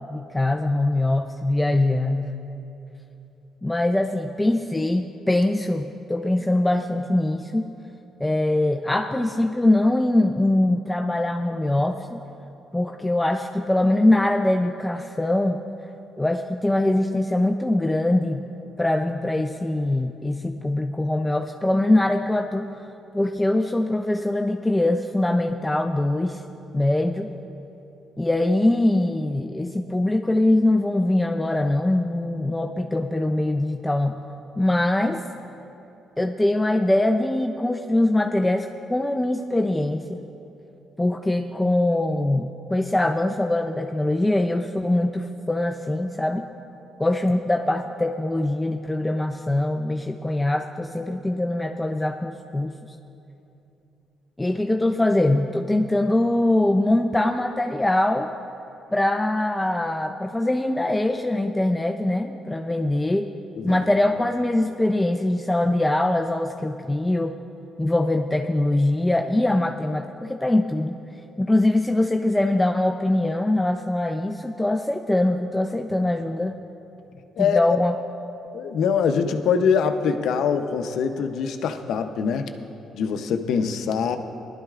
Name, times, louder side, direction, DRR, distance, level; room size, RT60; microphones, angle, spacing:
voice 1, 0.1-2.3 3.6-7.7 8.2-12.2 12.7-15.6 16.2-18.4 18.8-22.8 23.1-26.4 26.7-27.3 28.2-34.2 34.6-35.2 36.2-40.2 41.0-46.5 47.0-52.7 54.4-58.3 58.9-63.3 63.6-67.4 67.8-71.0 71.4-76.6 77.4-77.9, left 1 dB, 10° left, 5 dB, 0.4 m, -22 dB
voice 2, 78.5-82.5 82.9-84.2, left 6 dB, 75° left, 7 dB, 0.7 m, -23 dB
19.0 x 12.0 x 2.4 m, 2.9 s
cardioid pair, 90°, 0 cm